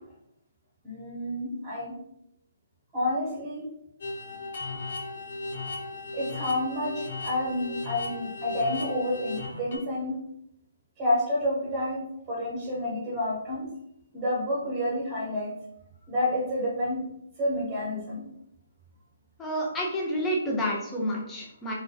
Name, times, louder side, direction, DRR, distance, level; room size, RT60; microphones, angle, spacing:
voice 1, 0.8-1.9 2.9-3.6 6.1-10.2 11.0-13.7 14.1-15.5 16.1-17.0 17.4-18.2, left 1 dB, 20° right, -6 dB, 0.9 m, -29 dB
sound 1, 4.0-9.8, left 2 dB, 60° left, 0.7 m, -36 dB
voice 2, 19.4-21.7, equal, 15° left, -3 dB, 0.6 m, -29 dB
2.3 x 2.2 x 2.6 m, 0.77 s
figure-of-eight pair, 135°, 0 cm